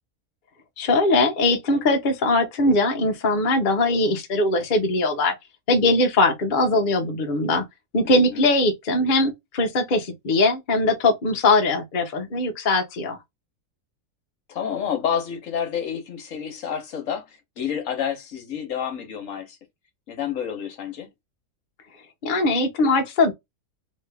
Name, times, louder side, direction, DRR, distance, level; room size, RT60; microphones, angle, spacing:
voice 1, 0.8-5.3 5.7-7.7 7.9-13.2 22.2-23.3, left 2 dB, 45° left, 0.7 m, -21 dB
voice 2, 8.0-8.4 14.5-17.2 17.6-19.6 20.1-21.1, left 8 dB, 65° left, 1.2 m, -29 dB
3.0 x 2.6 x 3.3 m
omnidirectional pair, 1.5 m